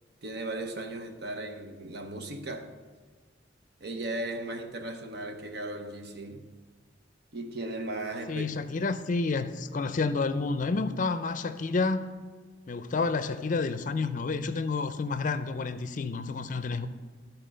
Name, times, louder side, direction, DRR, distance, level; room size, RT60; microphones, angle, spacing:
voice 1, 0.2-2.8 3.8-6.5 7.3-8.5, right 2 dB, 60° right, 0.9 m, -36 dB
voice 2, 8.3-12.1 12.7-16.9, left 4 dB, 45° left, 0.5 m, -29 dB
12.5 x 4.5 x 6.3 m
head